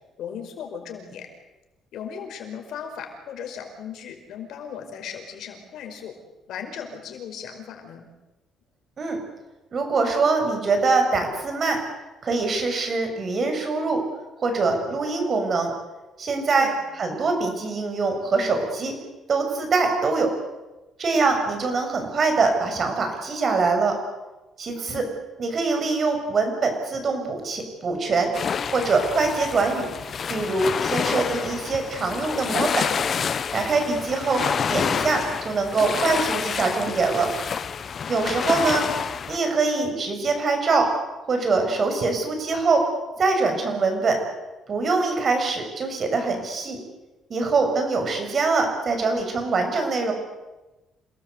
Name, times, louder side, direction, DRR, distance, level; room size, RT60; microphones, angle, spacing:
voice 1, 0.2-1.3 1.9-6.2 6.5-8.1 16.5-16.8 24.9-25.1, left 7 dB, 70° left, 5 dB, 5.2 m, -37 dB
voice 2, 9.7-11.8 12.2-14.0 14.4-15.7 16.2-16.7 17.0-18.9 19.3-20.3 21.0-24.0 24.6-25.0 25.4-28.3 28.7-29.9 30.3-32.9 33.5-34.4 34.7-37.3 38.1-38.9 39.3-40.9 41.3-42.8 43.2-44.2 44.7-46.8 47.3-50.1, right 3 dB, 40° right, 4 dB, 6.8 m, -23 dB
sound 1, 28.3-39.4, left 7 dB, 40° left, 1.0 m, -28 dB
28.0 x 19.0 x 8.1 m, 1.1 s
cardioid pair, 125°, 0 cm